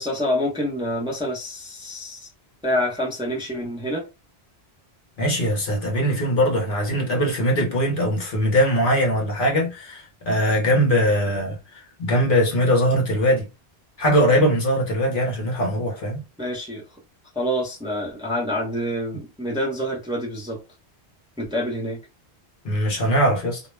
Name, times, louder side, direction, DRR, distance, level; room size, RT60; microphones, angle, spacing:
voice 1, 0.0-2.3 2.6-4.1 11.2-11.3 16.4-16.9 17.3-20.6 21.4-22.0, equal, 5° right, 0.6 m, -27 dB
voice 2, 5.2-11.6 12.0-13.5 14.0-16.2 22.6-23.6, equal, 55° left, 0.9 m, -21 dB
2.2 x 2.0 x 3.1 m
omnidirectional pair, 1.1 m